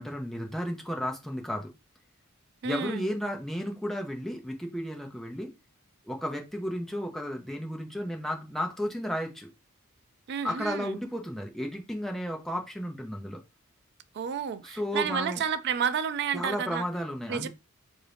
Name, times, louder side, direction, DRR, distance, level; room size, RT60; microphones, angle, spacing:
voice 1, 0.0-1.7 2.6-5.5 6.1-9.5 10.4-13.4 14.6-15.4 16.3-17.5, equal, ahead, 0.7 m, -33 dB
voice 2, 2.6-3.1 10.3-11.0 14.1-16.8 17.3-17.5, right 7 dB, 50° right, 0.3 m, -31 dB
3.6 x 2.6 x 3.4 m
head